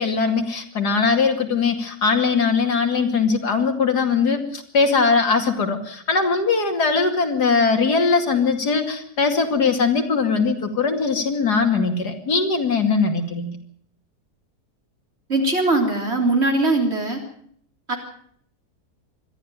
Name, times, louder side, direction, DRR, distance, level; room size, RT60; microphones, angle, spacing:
voice 1, 0.0-13.5, left 4 dB, 85° left, 5 dB, 3.2 m, -20 dB
voice 2, 15.3-17.2 17.9-18.0, right 2 dB, 40° right, 3 dB, 3.9 m, -20 dB
22.0 x 13.5 x 9.0 m, 0.63 s
omnidirectional pair, 1.7 m